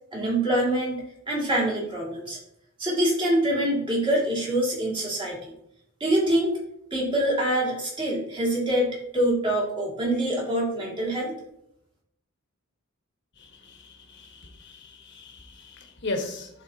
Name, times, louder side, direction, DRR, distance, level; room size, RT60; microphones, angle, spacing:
voice 1, 0.1-1.0 1.3-2.4 2.8-5.5 6.0-6.5 6.9-11.4, right 1 dB, 25° right, -4 dB, 2.2 m, -25 dB
voice 2, 13.6-16.5, left 2 dB, 55° left, 3 dB, 1.3 m, -36 dB
11.5 x 4.1 x 2.8 m, 0.77 s
head